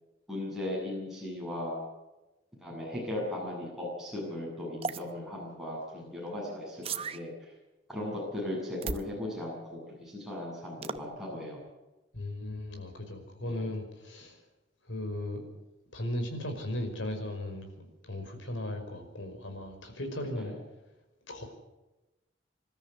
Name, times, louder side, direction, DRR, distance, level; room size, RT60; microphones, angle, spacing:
voice 1, 0.3-1.8 2.6-7.5 7.9-11.6 13.5-13.6 20.4-20.5, left 1 dB, ahead, -5 dB, 7.9 m, -37 dB
sound 1, 4.8-5.0 6.8-7.2 8.8-9.1 10.8-11.0, right 4 dB, 30° right, 0.7 m, -34 dB
voice 2, 12.1-14.4 14.8-15.5 15.9-20.6 21.2-21.4, left 1 dB, 85° left, 5 dB, 5.3 m, -37 dB
26.0 x 13.5 x 8.2 m, 1.0 s
head